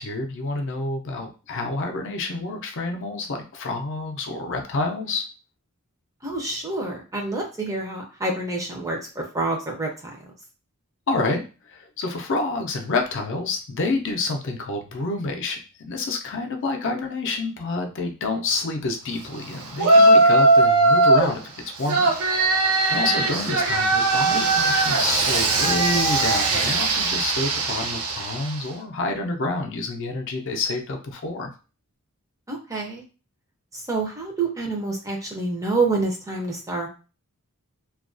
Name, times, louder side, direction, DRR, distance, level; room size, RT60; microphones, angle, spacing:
voice 1, 0.0-5.3 11.1-22.1 22.9-31.5, left 3 dB, 55° left, 3 dB, 0.4 m, -28 dB
voice 2, 6.2-10.2 22.9-23.3 32.5-33.0 33.7-36.9, right 3 dB, 15° right, 0 dB, 0.5 m, -28 dB
Yell, 19.8-21.3 21.9-28.6, right 2 dB, 80° right, 0.6 m, -19 dB
2.3 x 2.2 x 2.5 m, 0.34 s
head